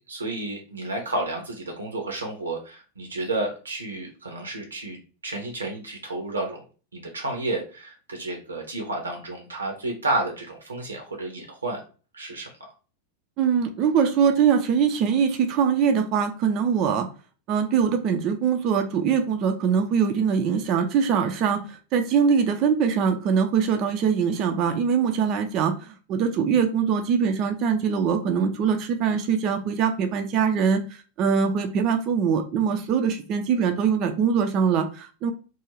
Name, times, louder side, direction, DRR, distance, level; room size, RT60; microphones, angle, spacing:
voice 1, 0.1-6.6 6.9-11.8 12.1-12.5, right 2 dB, 75° right, 3 dB, 0.6 m, -31 dB
voice 2, 13.4-17.1 17.5-30.8 31.2-35.3, right 6 dB, 40° right, 6 dB, 0.4 m, -22 dB
2.4 x 2.2 x 3.1 m, 0.36 s
figure-of-eight pair, 90°, 0 cm